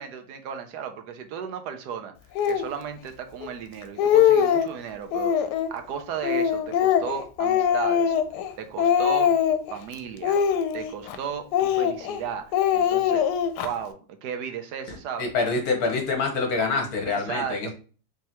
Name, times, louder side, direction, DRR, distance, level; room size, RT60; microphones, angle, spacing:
voice 1, 0.0-2.1 2.5-8.2 8.6-9.3 9.7-10.4 10.7-12.4 12.7-13.2 13.6-15.3 17.1-17.7, right 7 dB, 80° right, 7 dB, 1.2 m, -35 dB
Speech, 2.4-2.7 3.4-3.5 3.8-4.7 5.1-5.7 6.2-8.5 8.8-9.7 10.2-11.2 11.5-12.2 12.5-13.7, left 8 dB, 90° left, 1.2 m, -22 dB
voice 2, 15.2-17.7, left 4 dB, 65° left, 3 dB, 1.5 m, -26 dB
4.7 x 3.2 x 2.9 m, 0.38 s
omnidirectional pair, 1.7 m